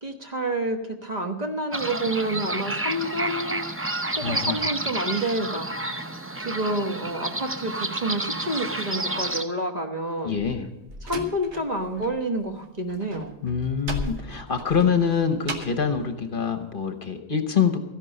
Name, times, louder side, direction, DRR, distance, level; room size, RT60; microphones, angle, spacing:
voice 1, 0.0-3.6 4.2-5.7 6.4-10.4 11.0-13.3, right 1 dB, 35° right, 3 dB, 1.2 m, -29 dB
sound 1, 1.7-9.4, right 2 dB, 15° right, 0.5 m, -30 dB
voice 2, 4.2-4.6 10.2-10.7 13.4-17.8, left 6 dB, 50° left, 7 dB, 1.1 m, -25 dB
Slam, 10.3-12.1 12.4-15.9, equal, 70° right, 1.5 m, -36 dB
14.0 x 10.5 x 5.4 m, 0.97 s
omnidirectional pair, 1.2 m